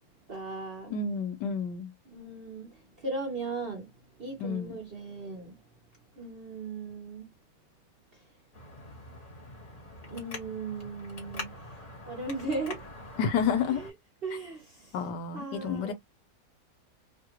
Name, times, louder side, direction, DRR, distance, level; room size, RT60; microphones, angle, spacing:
voice 1, 0.3-0.9 2.1-3.9 4.2-5.5 6.2-7.3 10.1-12.8 13.8-13.9 14.2-14.9 15.3-15.9, right 3 dB, 45° right, 0.9 m, -37 dB
voice 2, 0.9-1.9 4.4-4.8 13.2-13.8 14.9-15.9, left 6 dB, 80° left, 1.4 m, -30 dB
Traffic noise roadway noise, 8.5-13.9, left 2 dB, 45° left, 1.8 m, -44 dB
3.2 x 2.3 x 2.9 m
omnidirectional pair, 1.9 m